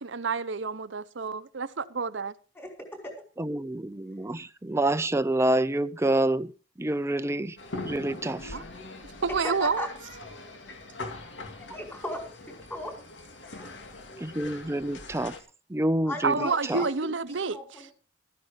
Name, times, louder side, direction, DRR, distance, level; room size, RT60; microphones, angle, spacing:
voice 1, 0.0-2.3 8.5-8.6 9.2-9.9 16.2-17.9, right 4 dB, 90° right, 0.8 m, -29 dB
voice 2, 3.4-6.5 6.8-7.6 7.8-8.5 14.2-15.3 15.7-16.8, right 1 dB, 15° right, 0.5 m, -27 dB
sound 1, 7.6-15.4, left 2 dB, 80° left, 2.4 m, -42 dB
voice 3, 9.4-9.9 11.6-12.2 12.7-12.9 13.4-13.7 16.1-17.9, left 1 dB, 15° left, 4.9 m, -36 dB
14.0 x 9.8 x 5.1 m
head